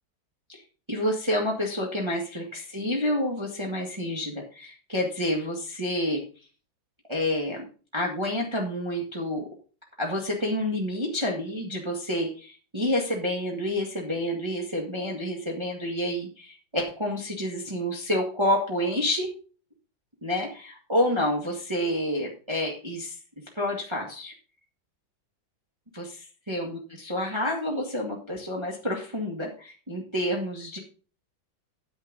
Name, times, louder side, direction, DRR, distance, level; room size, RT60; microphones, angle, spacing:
voice 1, 0.9-6.2 7.1-7.6 7.9-9.4 10.0-19.3 20.2-23.2 23.6-24.3 25.9-30.8, left 1 dB, 15° right, -1 dB, 1.7 m, -29 dB
9.8 x 9.0 x 3.9 m, 0.36 s
omnidirectional pair, 2.2 m